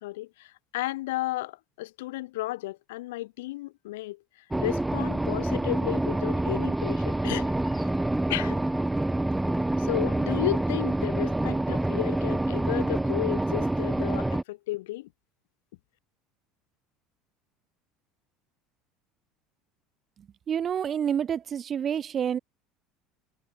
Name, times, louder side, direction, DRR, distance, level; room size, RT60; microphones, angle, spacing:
voice 1, 0.0-4.2 4.6-7.9 8.3-8.6 9.8-15.1, left 18 dB, 65° left, 3.5 m, -33 dB
sound 1, 4.5-14.4, right 1 dB, 5° right, 3.0 m, -27 dB
voice 2, 20.5-22.4, right 8 dB, 35° right, 2.0 m, -28 dB
figure-of-eight pair, 65°, 0 cm